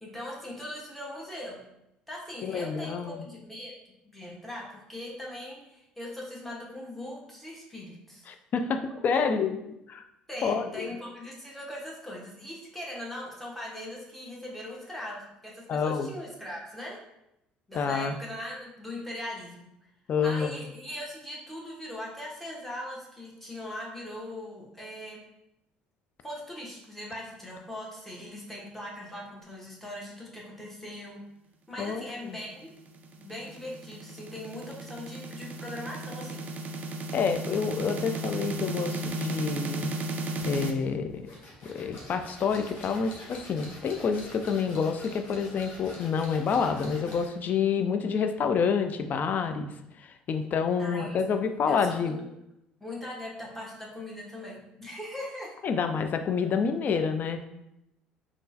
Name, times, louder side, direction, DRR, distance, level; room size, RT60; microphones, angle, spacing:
voice 1, 0.0-1.6 2.1-3.7 4.0-8.2 9.1-9.2 10.3-17.0 17.7-19.7 20.2-25.2 26.2-31.2 31.7-32.7 33.2-36.4 50.8-51.2 51.7-52.3 52.8-55.5, left 1 dB, 5° left, -4 dB, 1.2 m, -40 dB
voice 2, 2.4-3.2 8.3-9.6 9.9-10.0 10.4-10.9 15.7-16.1 17.7-18.1 20.1-20.6 31.8-32.4 37.1-39.9 40.4-41.3 41.6-49.7 50.0-52.2 55.6-57.4, left 6 dB, 45° left, 8 dB, 0.4 m, -28 dB
sound 1, 32.6-40.7, right 2 dB, 45° right, 0.4 m, -35 dB
sound 2, 40.4-47.4, left 1 dB, 60° left, 1.0 m, -47 dB
3.6 x 2.4 x 2.7 m, 0.86 s
hypercardioid pair, 60°, 4 cm